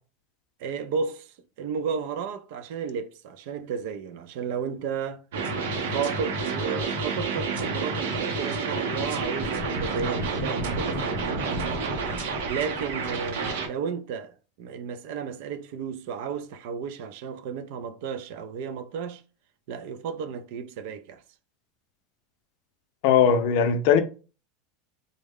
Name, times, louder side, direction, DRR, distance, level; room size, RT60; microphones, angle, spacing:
voice 1, 0.6-5.2 5.8-11.6 12.5-19.2 19.7-21.2, right 6 dB, 60° right, 0.4 m, -33 dB
sound 1, 5.3-13.7, right 4 dB, 90° right, 0.8 m, -29 dB
voice 2, 23.0-24.0, left 7 dB, 60° left, 0.5 m, -19 dB
3.5 x 2.1 x 3.5 m
supercardioid pair, 160°, 0 cm